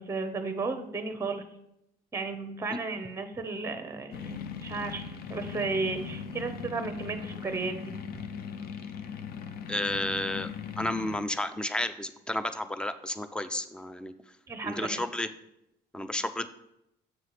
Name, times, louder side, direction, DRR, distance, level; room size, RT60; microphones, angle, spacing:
voice 1, 0.0-1.4 2.1-8.0 14.5-15.0, right 3 dB, 15° right, 8 dB, 0.8 m, -34 dB
sound 1, 4.1-11.2, left 7 dB, 65° left, 0.6 m, -39 dB
voice 2, 9.7-10.5 10.8-14.1 14.6-15.3 15.9-16.6, left 1 dB, 5° left, 11 dB, 0.4 m, -32 dB
7.7 x 3.1 x 5.6 m, 0.81 s
cardioid pair, 110°, 17 cm